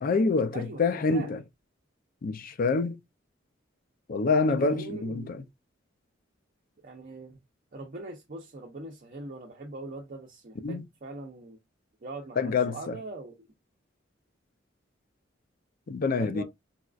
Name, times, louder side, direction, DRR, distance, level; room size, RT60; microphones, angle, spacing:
voice 1, 0.0-1.4 2.2-3.0 4.1-5.4 10.6-10.8 12.4-13.0 15.9-16.4, left 4 dB, 50° left, 0.4 m, -26 dB
voice 2, 0.5-1.3 4.5-5.3 6.8-7.4 7.7-11.6 12.0-13.5 16.2-16.4, right 2 dB, 45° right, 0.6 m, -41 dB
4.1 x 2.4 x 2.3 m
head